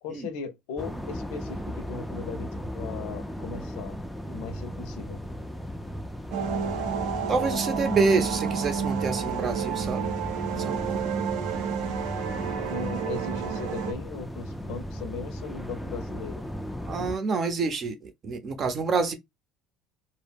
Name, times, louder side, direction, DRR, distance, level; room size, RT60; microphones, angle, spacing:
voice 1, 0.0-4.0 4.3-5.2 12.7-16.5, left 5 dB, 80° left, 0.6 m, -38 dB
sound 1, 0.8-17.2, equal, ahead, 0.4 m, -36 dB
sound 2, 6.3-13.9, right 7 dB, 75° right, 0.6 m, -30 dB
voice 2, 7.3-10.2 10.5-11.1 16.9-19.1, right 4 dB, 40° right, 0.7 m, -28 dB
2.1 x 2.1 x 3.3 m
supercardioid pair, 100°, 0 cm